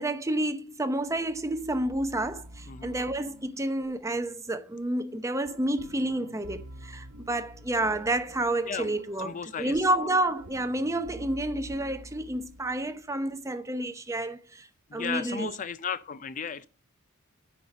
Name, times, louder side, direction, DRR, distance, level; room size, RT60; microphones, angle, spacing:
voice 1, 0.0-14.7 14.9-15.5, right 1 dB, 15° right, 0.8 m, -30 dB
sound 1, 1.0-13.1, right 1 dB, 70° right, 1.1 m, -48 dB
voice 2, 2.7-3.0 8.7-10.1 14.9-16.7, left 6 dB, 35° left, 0.4 m, -35 dB
9.3 x 5.8 x 6.2 m
head